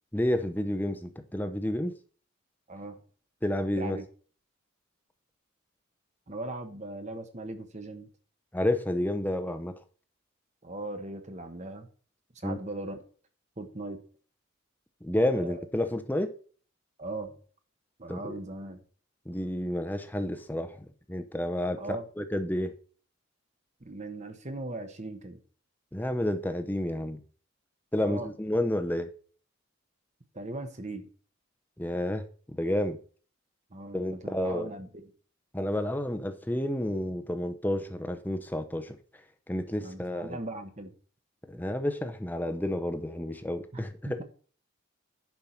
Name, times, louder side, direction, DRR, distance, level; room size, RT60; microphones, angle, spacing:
voice 1, 0.1-1.9 3.4-4.0 8.5-9.7 12.4-12.6 15.0-16.3 18.1-18.4 19.3-22.7 25.9-27.2 27.9-29.1 31.8-33.0 33.9-34.7 35.5-39.0 39.5-40.4 41.5-43.9, left 1 dB, 10° left, 0.8 m, -30 dB
voice 2, 2.7-3.0 3.8-4.0 6.3-8.1 10.6-11.9 12.3-13.0 13.6-14.0 15.3-15.6 17.0-17.4 18.0-18.8 21.8-22.0 23.8-25.4 28.0-28.3 30.3-31.1 33.7-35.1 39.8-40.9 43.7-44.2, right 2 dB, 35° right, 1.1 m, -39 dB
10.5 x 4.7 x 5.8 m
head